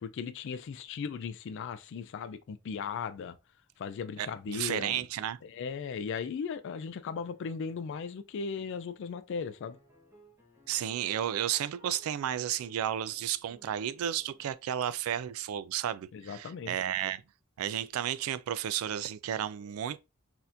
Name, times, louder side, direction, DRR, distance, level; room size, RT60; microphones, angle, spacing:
voice 1, 0.0-3.4 3.8-5.1 5.4-9.8 16.1-16.8, left 6 dB, 60° left, 0.3 m, -37 dB
voice 2, 4.2-5.4 10.7-17.2 17.6-20.0, right 10 dB, 80° right, 0.3 m, -33 dB
sound 1, 7.1-8.2 8.6-14.5, equal, 15° right, 1.1 m, -62 dB
4.1 x 2.8 x 2.5 m
head